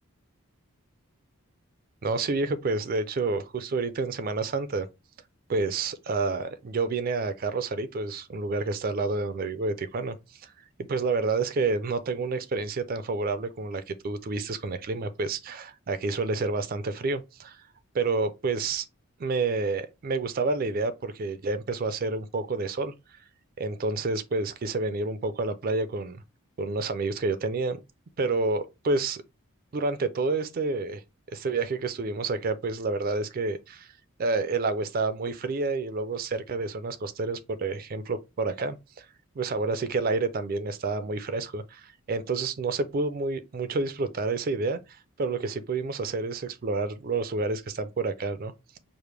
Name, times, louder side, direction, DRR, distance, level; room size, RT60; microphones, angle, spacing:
voice 1, 2.0-4.9 5.5-10.2 10.4-10.5 10.9-17.6 17.9-18.8 19.2-22.9 23.6-26.2 26.6-27.8 28.2-29.2 29.7-31.0 31.3-33.9 34.2-39.1 39.4-44.8 45.2-48.5, right 3 dB, 40° right, 0.4 m, -29 dB
4.9 x 2.1 x 3.2 m
head